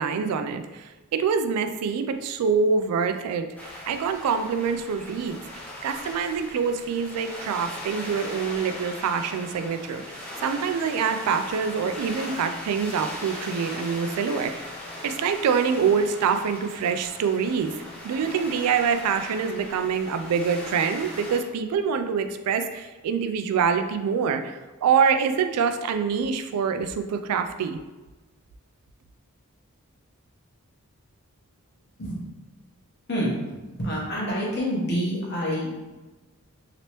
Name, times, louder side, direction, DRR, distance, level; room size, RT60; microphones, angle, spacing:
voice 1, 0.0-10.0 10.4-14.5 15.0-17.7 18.0-27.8, right 6 dB, 90° right, 13 dB, 0.3 m, -25 dB
sound 1, 3.6-21.4, left 1 dB, 5° left, 0.5 m, -39 dB
voice 2, 33.1-35.8, equal, 50° left, -5 dB, 1.0 m, -28 dB
3.0 x 2.9 x 2.9 m, 1.2 s
head